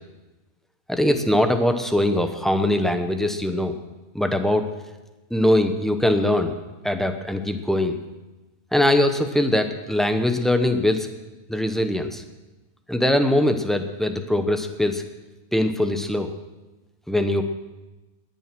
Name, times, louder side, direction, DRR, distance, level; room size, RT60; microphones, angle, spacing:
voice 1, 0.9-3.8 4.1-4.7 5.3-6.5 6.8-8.0 8.7-11.1 11.5-12.2 12.9-15.0 15.5-16.3 17.1-17.4, left 1 dB, ahead, 6 dB, 0.5 m, -21 dB
19.5 x 7.4 x 6.1 m, 1.1 s
omnidirectional pair, 1.5 m